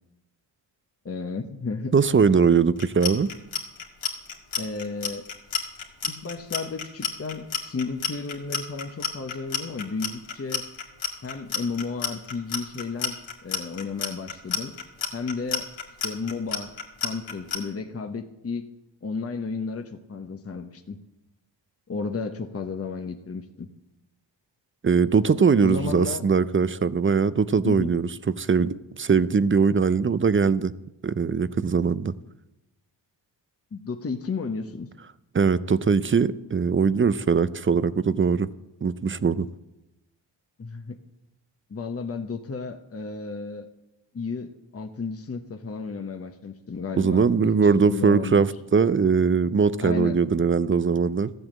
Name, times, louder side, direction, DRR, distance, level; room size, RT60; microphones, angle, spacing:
voice 1, 1.0-1.9 4.6-5.3 6.0-10.7 11.2-14.8 15.1-15.7 16.0-16.7 17.0-18.7 19.0-21.0 21.9-23.7 25.6-26.2 27.6-27.9 33.7-34.9 40.6-41.0 41.7-43.7 44.1-48.5 49.8-50.2, left 4 dB, 30° left, 1.1 m, -33 dB
voice 2, 1.9-3.3 24.8-28.1 28.4-30.7 31.0-32.1 35.3-38.5 38.8-39.5 47.0-51.3, right 5 dB, 25° right, 0.6 m, -21 dB
Clock, 2.8-17.6, left 6 dB, 75° left, 2.1 m, -30 dB
13.5 x 8.0 x 7.4 m
cardioid pair, 60°, 46 cm